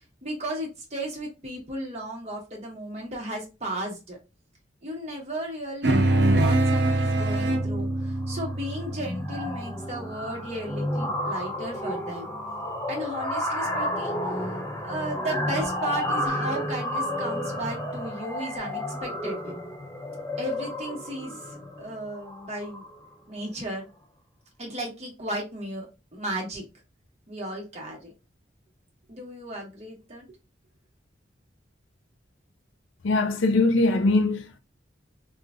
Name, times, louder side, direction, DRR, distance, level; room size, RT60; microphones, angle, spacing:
voice 1, 0.2-4.2 4.8-12.3 12.9-14.1 14.4-14.6 14.8-19.5 20.4-22.8 23.3-23.9 24.6-25.9 26.1-26.6 27.3-28.1 29.1-30.2, right 1 dB, 35° right, 1.2 m, -35 dB
sound 1, 5.8-10.6, right 2 dB, 60° right, 0.6 m, -24 dB
sound 2, 7.1-7.4 7.7-7.9 8.2-23.1, left 1 dB, 15° left, 0.5 m, -32 dB
voice 2, 33.0-34.6, left 2 dB, 80° left, 0.5 m, -22 dB
3.1 x 2.4 x 3.6 m
head